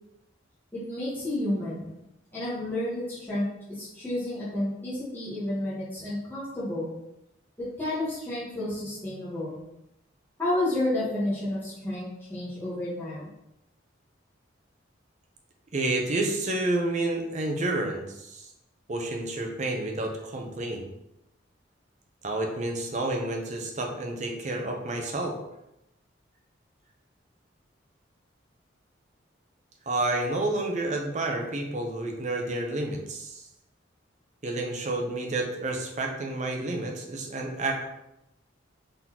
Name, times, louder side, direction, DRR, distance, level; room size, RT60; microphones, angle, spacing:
voice 1, 0.7-1.9 2.3-6.9 7.8-9.6 10.4-13.3, left 1 dB, 10° left, -10 dB, 1.2 m, -31 dB
voice 2, 15.7-18.5 18.9-20.9 22.2-25.4 29.9-33.4 34.4-37.9, right 2 dB, 35° right, 2 dB, 0.6 m, -30 dB
4.1 x 3.8 x 2.9 m, 0.87 s
head